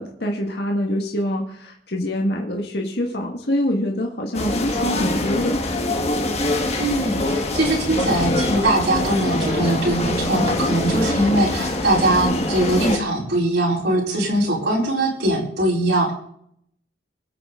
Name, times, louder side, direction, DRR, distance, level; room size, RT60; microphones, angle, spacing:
voice 1, 0.0-5.6, left 1 dB, 65° left, 0 dB, 1.8 m, -25 dB
sound 1, 4.3-13.0, left 1 dB, 35° left, 1.6 m, -24 dB
voice 2, 6.8-16.1, right 1 dB, 80° right, -5 dB, 4.3 m, -21 dB
24.0 x 8.4 x 3.9 m, 0.68 s
head